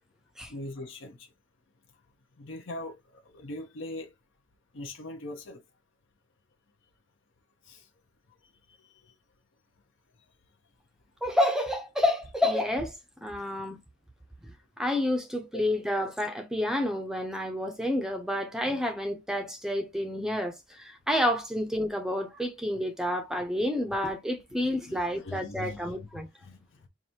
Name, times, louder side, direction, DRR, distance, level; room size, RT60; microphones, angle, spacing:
voice 1, 0.5-1.3 2.4-4.1 4.7-5.6 7.6-7.9 8.7-9.1 15.5-15.6 24.8-26.9, left 2 dB, 65° left, 0.6 m, -41 dB
voice 2, 11.2-12.9 13.2-13.8 14.8-26.3, left 1 dB, 5° right, 0.5 m, -29 dB
4.8 x 2.5 x 2.8 m
head